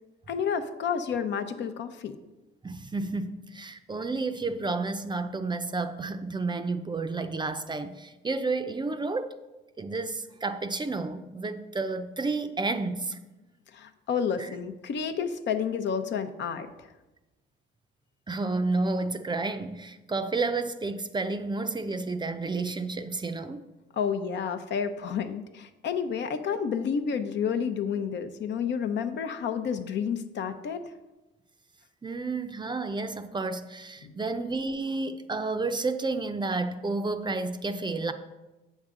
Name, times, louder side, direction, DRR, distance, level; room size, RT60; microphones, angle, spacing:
voice 1, 0.3-2.2 13.7-16.9 23.9-30.8 34.0-34.1, left 7 dB, 65° left, 0.7 m, -30 dB
voice 2, 2.6-9.3 9.8-13.2 18.3-23.7 32.0-38.1, right 3 dB, 20° right, 0.5 m, -31 dB
8.1 x 6.4 x 3.7 m
cardioid pair, 90°, 20 cm